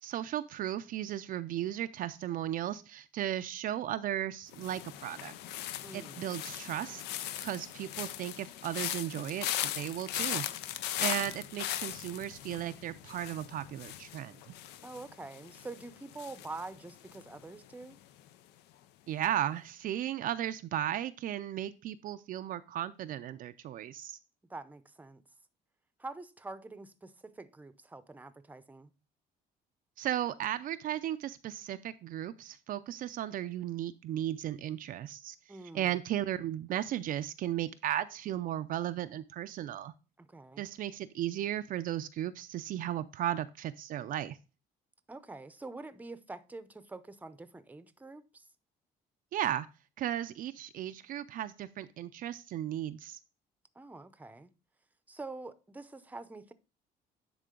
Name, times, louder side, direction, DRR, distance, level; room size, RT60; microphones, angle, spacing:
voice 1, 0.0-5.3 5.9-10.5 11.0-14.4 19.1-24.2 30.0-35.4 35.7-39.9 40.6-44.4 49.3-49.7 50.0-53.2, right 12 dB, 55° right, 0.4 m, -35 dB
sound 1, 4.5-17.6 17.8-18.3, left 12 dB, 90° left, 0.5 m, -39 dB
voice 2, 5.8-6.3 11.1-11.3 14.8-18.0 24.5-25.2 26.0-28.9 35.5-36.0 40.2-40.7 45.1-48.5 53.8-54.5 55.1-56.5, right 3 dB, 10° right, 0.6 m, -46 dB
10.0 x 3.7 x 3.7 m
cardioid pair, 110°, 17 cm